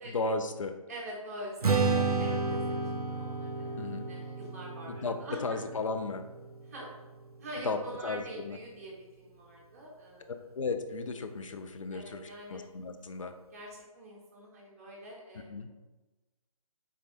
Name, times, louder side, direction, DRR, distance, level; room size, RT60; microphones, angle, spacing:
voice 1, 0.0-0.7 2.3-2.6 3.8-4.1 4.9-6.2 7.6-8.6 10.3-13.3 15.5-15.7, left 3 dB, 60° left, 8 dB, 0.4 m, -35 dB
voice 2, 0.9-5.6 6.7-6.9 7.4-10.3 11.9-12.6 13.5-13.7 13.9-15.7, right 1 dB, 25° right, -4 dB, 0.8 m, -44 dB
Strum, 1.6-7.9, right 4 dB, 85° right, 0.5 m, -32 dB
3.7 x 3.2 x 2.4 m, 1.1 s
figure-of-eight pair, 145°, 19 cm